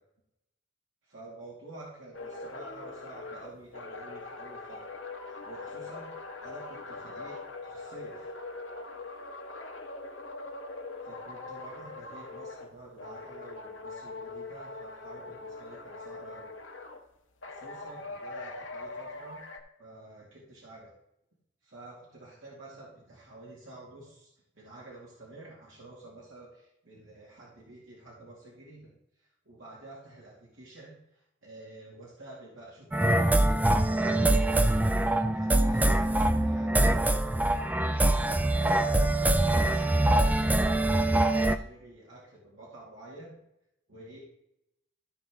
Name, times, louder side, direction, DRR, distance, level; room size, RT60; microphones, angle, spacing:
voice 1, 1.0-4.8 5.2-6.1 6.4-8.3 11.0-16.5 17.5-19.4 19.8-20.9 21.6-28.9 29.2-37.7 38.2-43.4 43.9-44.2, right 2 dB, 90° right, -5 dB, 2.5 m, -49 dB
sound 1, 2.1-12.7 13.0-17.0 17.4-19.6, left 3 dB, 85° left, 1.4 m, -42 dB
sound 2, 32.9-41.6, right 1 dB, 10° right, 0.3 m, -24 dB
14.0 x 5.5 x 3.7 m, 0.83 s
head